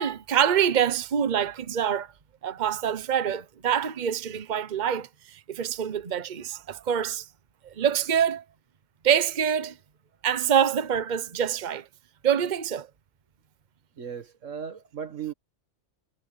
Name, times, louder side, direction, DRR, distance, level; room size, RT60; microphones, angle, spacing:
voice 1, 0.0-2.1 2.4-7.2 7.6-8.4 9.0-9.8 10.2-11.8 12.2-12.9, right 8 dB, 40° right, 1.0 m, -25 dB
voice 2, 14.0-15.3, right 8 dB, 85° right, 1.8 m, -36 dB
omnidirectional pair, 1.3 m